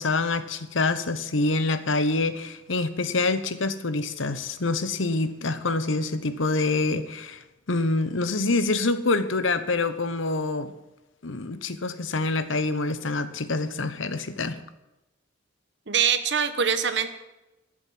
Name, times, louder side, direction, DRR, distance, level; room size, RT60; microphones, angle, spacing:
voice 1, 0.0-10.7 11.2-14.6, left 3 dB, 80° left, 12 dB, 1.0 m, -26 dB
voice 2, 15.9-17.1, right 7 dB, 60° right, 11 dB, 1.1 m, -23 dB
13.0 x 7.5 x 9.4 m, 0.98 s
head